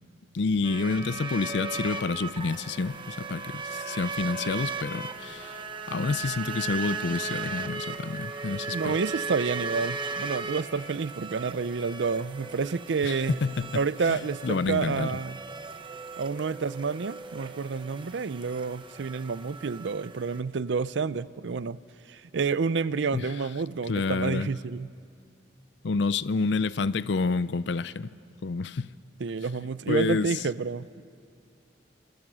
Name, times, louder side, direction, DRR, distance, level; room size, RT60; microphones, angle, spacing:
voice 1, 0.3-9.0 13.0-13.8 14.1-15.1 23.1-23.3 23.9-24.5 25.8-28.1 28.4-28.9 29.9-30.3, left 4 dB, 65° left, 17 dB, 0.5 m, -29 dB
sound 1, 0.6-20.4, right 4 dB, 25° right, 1.0 m, -37 dB
voice 2, 8.7-13.4 13.7-15.4 16.2-21.8 22.1-24.9 29.2-31.0, right 5 dB, 70° right, 17 dB, 0.5 m, -29 dB
28.5 x 26.0 x 6.2 m, 2.4 s
head